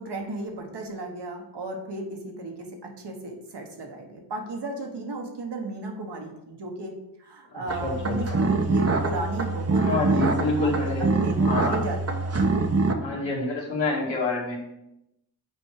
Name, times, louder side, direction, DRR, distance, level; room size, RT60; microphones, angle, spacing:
voice 1, 0.0-6.9 7.2-12.3, right 2 dB, 65° right, 2 dB, 1.5 m, -35 dB
voice 2, 7.5-8.2 9.8-11.1 11.4-11.8 13.0-14.6, left 2 dB, 75° left, -3 dB, 2.1 m, -27 dB
sound 1, 7.7-12.9, right 3 dB, 35° right, 1.0 m, -24 dB
6.1 x 4.5 x 4.7 m, 0.86 s
supercardioid pair, 40°, 45 cm